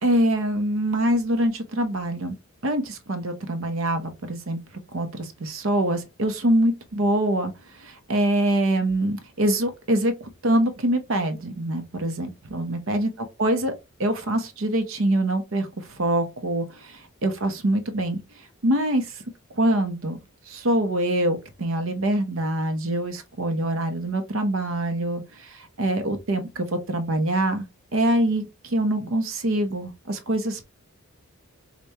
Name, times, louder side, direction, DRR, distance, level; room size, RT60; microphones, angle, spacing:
voice 1, 0.0-2.3 2.6-4.6 4.9-7.5 7.8-13.1 13.4-13.7 14.0-18.2 18.6-19.2 19.5-20.2 20.5-27.7 27.9-30.6, right 1 dB, 65° right, 0.7 m, -24 dB
5.0 x 2.2 x 2.8 m
head